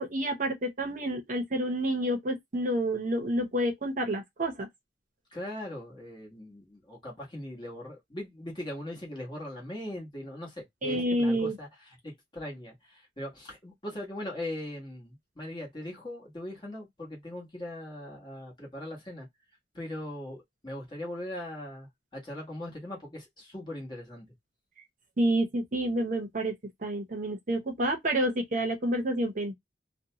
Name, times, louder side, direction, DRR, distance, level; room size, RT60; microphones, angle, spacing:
voice 1, 0.0-4.7 10.8-11.6 25.2-26.5 26.8-29.5, right 1 dB, 45° right, 0.7 m, -29 dB
voice 2, 5.3-11.7 12.0-19.3 19.7-24.3, left 1 dB, 25° left, 1.2 m, -40 dB
2.7 x 2.2 x 2.8 m
head